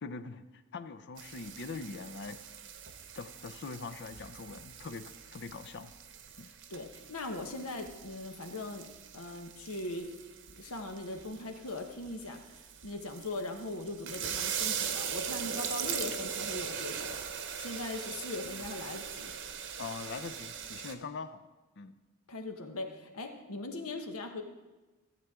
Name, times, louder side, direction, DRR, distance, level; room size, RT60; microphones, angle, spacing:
voice 1, 0.0-2.4 3.1-5.9 6.4-6.5 19.8-21.5 21.8-21.9, left 4 dB, 55° left, 11 dB, 0.6 m, -42 dB
sound 1, 1.2-20.9, right 7 dB, 60° right, 0.8 m, -41 dB
voice 2, 6.7-8.9 9.1-10.1 10.6-12.5 12.8-17.2 17.6-19.3 22.3-24.4, left 2 dB, 90° left, 5 dB, 1.2 m, -40 dB
15.0 x 8.2 x 3.7 m, 1.2 s
head